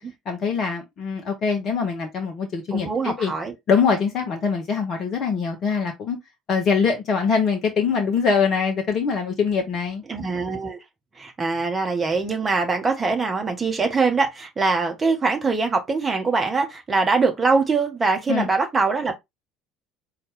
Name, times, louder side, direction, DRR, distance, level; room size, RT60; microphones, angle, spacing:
voice 1, 0.3-3.3 3.7-6.2 6.5-10.0 18.3-18.5, left 5 dB, 45° left, 0.9 m, -23 dB
voice 2, 2.7-3.5 10.1-10.8 11.2-19.1, right 4 dB, 25° right, 1.3 m, -23 dB
4.1 x 2.8 x 3.5 m
figure-of-eight pair, 60°, 0 cm